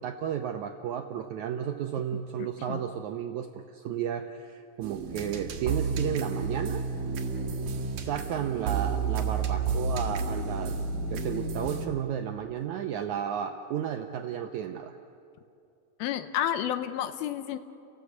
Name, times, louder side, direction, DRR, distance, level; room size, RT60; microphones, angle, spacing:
voice 1, 0.0-6.8 8.0-10.8 11.1-15.0, right 9 dB, 75° right, 5 dB, 1.7 m, -33 dB
voice 2, 2.4-2.8 16.0-17.6, left 11 dB, 80° left, 11 dB, 2.7 m, -31 dB
sound 1, 4.8-11.9, right 4 dB, 55° right, 2.6 m, -31 dB
30.0 x 18.0 x 8.3 m, 2.7 s
omnidirectional pair, 4.3 m